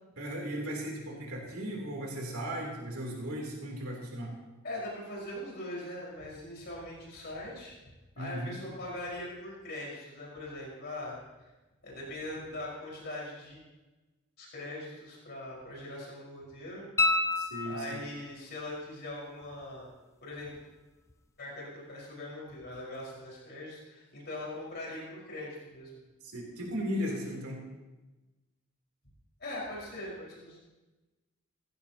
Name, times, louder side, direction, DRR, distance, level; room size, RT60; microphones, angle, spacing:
voice 1, 0.2-4.3 8.2-8.6 17.4-18.0 26.2-27.6, equal, 90° right, -1 dB, 3.5 m, -36 dB
voice 2, 4.6-7.8 8.2-11.2 11.8-13.6 14.4-16.9 17.7-19.9 20.2-20.5 21.4-26.0 29.4-30.6, left 1 dB, 50° left, -5 dB, 5.2 m, -41 dB
sound 1, 17.0-18.3 21.1-21.2, left 2 dB, 15° left, 0.6 m, -29 dB
18.0 x 15.0 x 3.0 m, 1.1 s
head